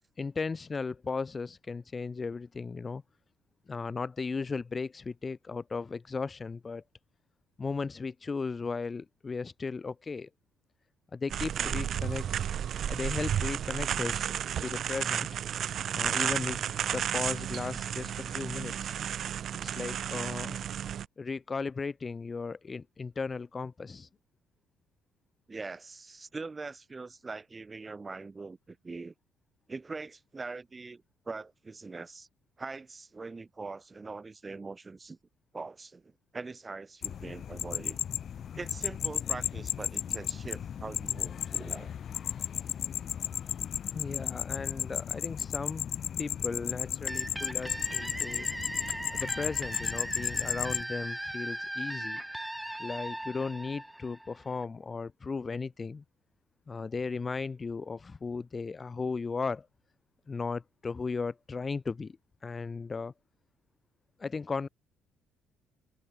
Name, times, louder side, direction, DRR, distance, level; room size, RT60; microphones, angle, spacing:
voice 1, 0.2-3.0 3.7-6.8 7.6-10.3 11.1-12.2 12.7-14.3 14.6-15.3 15.9-18.9 19.6-20.6 21.2-24.1 43.9-45.9 46.2-48.5 49.1-52.2 52.8-56.0 56.7-59.7 60.3-62.2 62.4-63.1 64.2-64.7, left 4 dB, 25° left, 3.1 m, -36 dB
sound 1, 11.3-21.1, right 9 dB, 55° right, 2.7 m, -32 dB
voice 2, 11.6-11.9 25.5-29.1 29.7-32.3 32.6-35.2 35.5-38.0 38.5-41.9, right 3 dB, 20° right, 6.1 m, -42 dB
sound 2, 37.0-50.8, left 8 dB, 50° left, 1.4 m, -34 dB
sound 3, 47.1-54.6, right 1 dB, 5° right, 2.9 m, -38 dB
cardioid pair, 115°, 0 cm